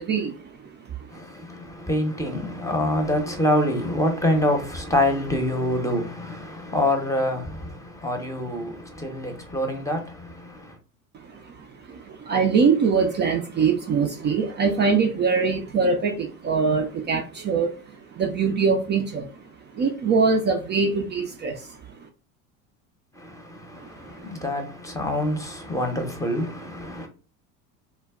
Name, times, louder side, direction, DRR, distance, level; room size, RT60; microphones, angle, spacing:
voice 1, 0.0-1.1 11.1-19.4 19.7-22.1 23.8-24.3, right 5 dB, 25° right, 0.4 m, -24 dB
voice 2, 1.1-10.8 23.1-27.1, left 1 dB, 10° left, 0.7 m, -26 dB
2.2 x 2.0 x 3.5 m
hypercardioid pair, 75°, 42 cm